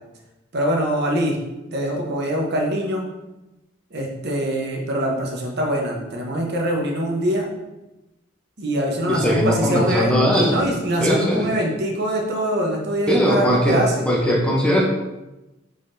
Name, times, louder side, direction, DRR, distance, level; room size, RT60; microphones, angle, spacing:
voice 1, 0.5-1.3 1.7-3.0 3.9-7.5 8.6-14.1, right 1 dB, 60° right, 0 dB, 0.9 m, -23 dB
voice 2, 9.1-10.7 11.0-11.5 13.1-14.8, equal, 5° left, -2 dB, 0.7 m, -19 dB
5.1 x 3.9 x 2.6 m, 1.0 s
head